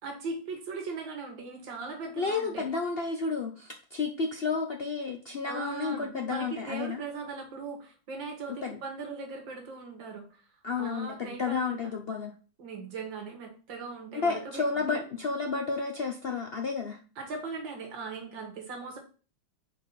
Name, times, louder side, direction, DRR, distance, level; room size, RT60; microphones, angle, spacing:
voice 1, 0.0-2.7 5.5-10.4 10.8-11.8 12.6-15.0 17.2-19.0, right 4 dB, 80° right, 3 dB, 2.2 m, -39 dB
voice 2, 2.2-7.0 8.5-8.8 10.6-12.3 14.1-17.0, left 4 dB, 75° left, 2 dB, 0.5 m, -31 dB
5.2 x 4.2 x 5.3 m, 0.37 s
omnidirectional pair, 2.0 m